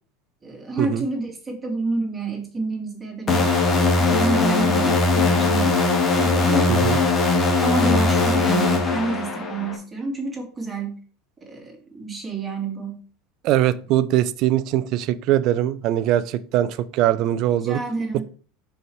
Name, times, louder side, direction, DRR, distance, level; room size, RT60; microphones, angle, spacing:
voice 1, 0.4-5.8 6.2-6.8 7.6-11.0 11.4-13.0 17.6-18.2, right 3 dB, 20° right, 0 dB, 2.3 m, -28 dB
sound 1, 3.3-9.8, left 3 dB, 30° left, 1.8 m, -20 dB
voice 2, 6.7-7.0 13.4-17.8, right 12 dB, 55° right, 16 dB, 0.5 m, -21 dB
5.3 x 4.9 x 4.6 m, 0.41 s
supercardioid pair, 110°, 0 cm